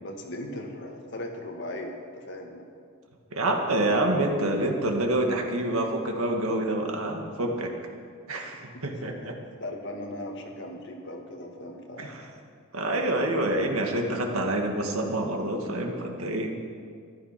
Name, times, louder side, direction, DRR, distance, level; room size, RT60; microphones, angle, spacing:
voice 1, 0.0-2.6 8.4-8.6 9.0-9.3 9.6-12.2, left 1 dB, 55° left, 2 dB, 1.7 m, -38 dB
voice 2, 3.3-7.7 8.3-9.3 12.0-12.2 12.7-16.7, right 1 dB, 80° right, 2 dB, 1.9 m, -27 dB
13.5 x 12.0 x 5.8 m, 2.2 s
head